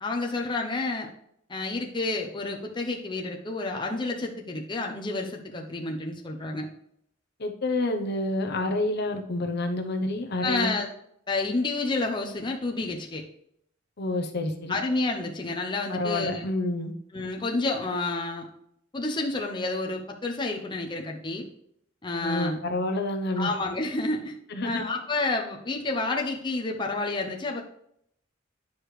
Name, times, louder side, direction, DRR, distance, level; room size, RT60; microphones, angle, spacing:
voice 1, 0.0-1.1 1.5-6.7 10.4-10.9 11.3-13.2 14.7-16.4 17.1-18.5 18.9-21.5 22.0-22.6 23.4-24.4 24.6-27.6, left 2 dB, 25° left, 1 dB, 0.7 m, -29 dB
voice 2, 7.4-10.7 14.0-14.8 15.9-16.9 22.2-23.5 24.5-24.9, left 2 dB, 55° left, 4 dB, 0.8 m, -28 dB
9.5 x 4.9 x 3.2 m, 0.71 s
head